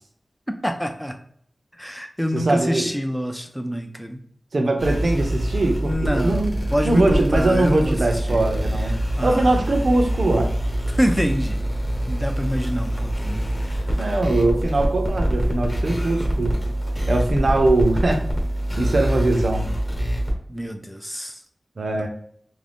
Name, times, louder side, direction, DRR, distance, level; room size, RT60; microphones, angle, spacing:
voice 1, 0.5-1.2 1.8-4.2 5.8-8.4 8.8-9.7 10.9-11.7 12.1-14.2 20.5-21.4 21.9-22.0, equal, 5° left, 6 dB, 0.4 m, -27 dB
voice 2, 2.3-2.9 4.5-6.5 6.8-9.0 9.2-10.5 14.0-16.5 17.1-18.2 18.7-19.7 21.8-22.1, right 2 dB, 70° right, 3 dB, 0.6 m, -21 dB
sound 1, 4.8-20.3, right 1 dB, 20° left, 1.0 m, -25 dB
2.5 x 2.2 x 3.4 m, 0.64 s
cardioid pair, 50°, 0 cm